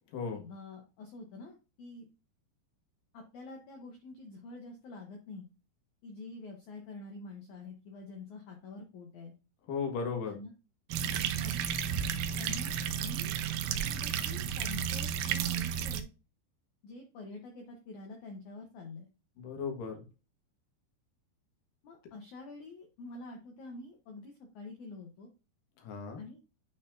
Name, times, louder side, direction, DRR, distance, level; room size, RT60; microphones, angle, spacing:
voice 1, 0.3-2.1 3.1-5.4 6.0-9.3 10.3-10.5 11.4-11.6 12.4-13.4 13.7-16.1 16.8-19.1 21.8-25.3 26.2-26.4, left 3 dB, 85° left, 2 dB, 1.7 m, -47 dB
voice 2, 9.7-10.3 19.4-20.0 25.8-26.2, left 5 dB, 60° left, 3 dB, 2.8 m, -36 dB
sound 1, 10.9-16.0, right 9 dB, 85° right, 2.1 m, -32 dB
9.1 x 4.3 x 2.6 m, 0.31 s
omnidirectional pair, 4.9 m